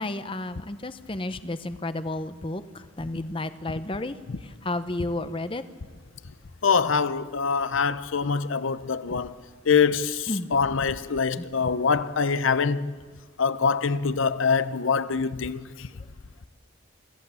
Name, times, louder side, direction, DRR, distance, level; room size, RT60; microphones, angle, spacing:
voice 1, 0.0-2.6 3.0-4.2 4.6-5.6 10.3-10.5 11.4-11.5, left 2 dB, 25° left, 0.7 m, -31 dB
voice 2, 6.6-9.3 9.7-12.9 13.4-15.9, left 5 dB, 70° left, 0.6 m, -24 dB
25.5 x 14.5 x 6.9 m
head